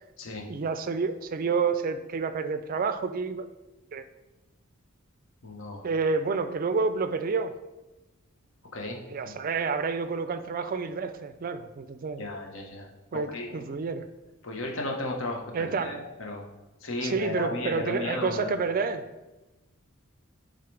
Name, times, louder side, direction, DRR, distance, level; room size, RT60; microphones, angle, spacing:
voice 1, 0.5-3.5 3.9-4.0 5.8-7.5 9.1-12.3 13.1-14.1 15.5-16.0 17.0-19.0, right 4 dB, 45° right, 11 dB, 0.4 m, -29 dB
voice 2, 5.4-5.9 8.7-9.0 12.2-13.6 14.4-16.5 16.8-18.5, left 2 dB, 65° left, 0 dB, 1.2 m, -34 dB
10.5 x 3.8 x 3.4 m, 1.1 s
head